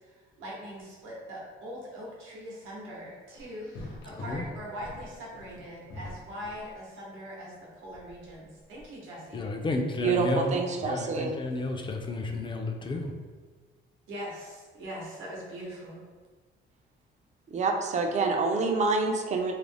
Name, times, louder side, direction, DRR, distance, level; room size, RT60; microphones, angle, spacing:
voice 1, 0.0-9.5 14.1-16.0, equal, 90° right, -4 dB, 0.8 m, -42 dB
sound 1, 3.3-6.8 7.9-8.9, left 1 dB, 80° left, 0.7 m, -44 dB
voice 2, 9.3-10.6 10.8-13.1, left 2 dB, 25° left, 3 dB, 0.4 m, -31 dB
voice 3, 10.0-11.3 17.5-19.5, right 4 dB, 35° right, 3 dB, 0.4 m, -27 dB
2.4 x 2.0 x 3.3 m, 1.4 s
cardioid pair, 90°, 20 cm